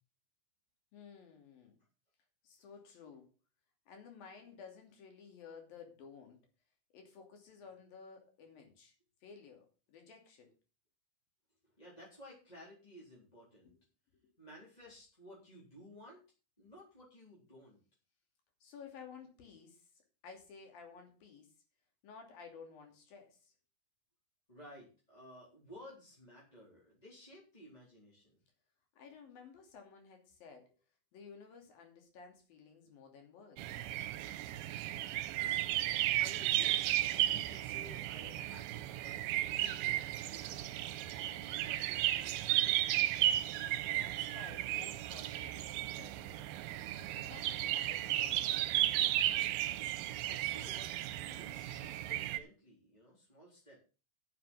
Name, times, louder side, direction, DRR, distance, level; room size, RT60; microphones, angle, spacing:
voice 1, 0.9-1.7 2.4-3.3 3.9-6.4 6.9-8.9 9.2-10.5 18.6-21.5 22.0-23.5 29.0-30.8 31.1-33.8 44.0-46.6 47.1-49.1, left 5 dB, 70° left, 3 dB, 4.6 m, -54 dB
voice 2, 11.6-13.7 14.4-16.2 16.6-17.8 24.5-28.4 36.2-40.9 41.3-43.2 50.2-53.8, equal, 10° left, -5 dB, 3.8 m, -56 dB
sound 1, 33.6-52.4, right 14 dB, 90° right, 2.6 m, -34 dB
9.9 x 7.4 x 7.4 m, 0.35 s
omnidirectional pair, 4.2 m